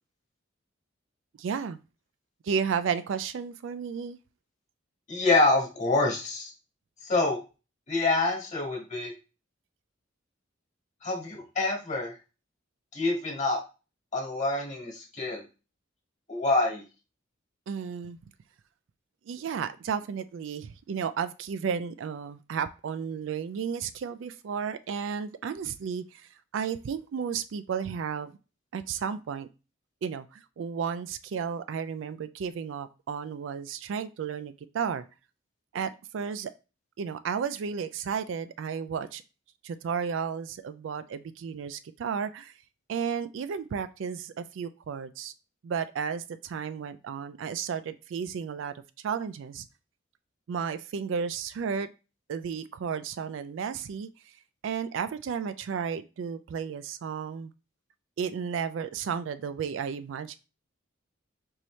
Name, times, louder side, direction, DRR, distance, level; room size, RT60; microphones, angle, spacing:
voice 1, 1.4-1.8 2.4-4.2 17.7-18.2 19.3-26.3 26.5-28.4 28.7-29.5 30.0-35.1 35.7-36.5 37.0-39.2 39.6-42.5 42.9-45.3 45.6-48.7 49.0-49.7 50.5-51.9 52.3-54.1 54.6-57.5 58.2-60.4, right 6 dB, 70° right, 12 dB, 0.3 m, -33 dB
voice 2, 5.1-6.5 7.0-7.4 7.9-9.1 11.0-12.1 12.9-13.6 14.1-15.4 16.3-16.8, left 2 dB, 35° left, -1 dB, 1.5 m, -26 dB
4.5 x 2.7 x 3.1 m, 0.31 s
head